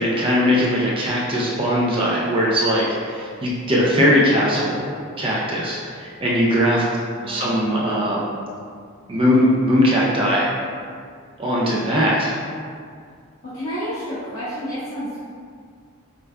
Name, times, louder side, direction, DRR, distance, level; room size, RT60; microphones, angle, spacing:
voice 1, 0.0-4.8 5.2-6.9 7.3-8.3 9.1-10.5 11.4-12.3, equal, 25° right, -5 dB, 0.3 m, -20 dB
voice 2, 7.2-8.0 13.5-15.2, equal, 65° left, -15 dB, 1.0 m, -30 dB
4.8 x 2.2 x 2.2 m, 2.1 s
head